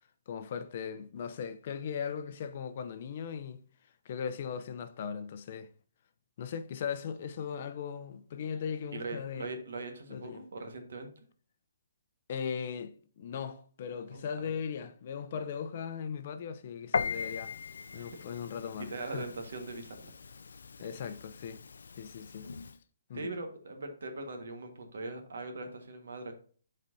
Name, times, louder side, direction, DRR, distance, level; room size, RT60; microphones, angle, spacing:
voice 1, 0.3-3.6 4.0-5.7 6.4-9.6 10.1-10.4 12.3-17.6 17.9-19.3 20.8-21.6 22.0-22.5 23.1-23.3, left 7 dB, 40° left, 0.6 m, -38 dB
voice 2, 8.9-11.1 14.1-14.5 17.9-18.0 18.8-20.1 23.1-26.4, right 2 dB, 75° right, 1.5 m, -41 dB
Piano, 16.9-22.8, left 5 dB, 85° left, 0.4 m, -39 dB
9.8 x 4.3 x 2.7 m
hypercardioid pair, 165°, 0 cm